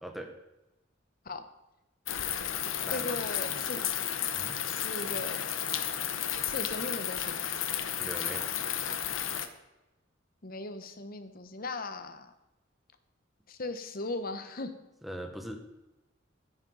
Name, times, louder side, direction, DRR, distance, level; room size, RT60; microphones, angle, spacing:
voice 1, 0.0-0.3 2.8-3.1 4.3-4.6 7.9-8.5 15.0-15.6, equal, ahead, 4 dB, 1.4 m, -41 dB
sound 1, 2.1-9.5, left 10 dB, 85° left, 1.0 m, -33 dB
voice 2, 2.9-3.8 4.6-5.4 6.4-7.5 10.4-12.3 13.5-14.7, left 2 dB, 50° left, 9 dB, 1.1 m, -38 dB
15.5 x 9.8 x 4.0 m, 0.98 s
head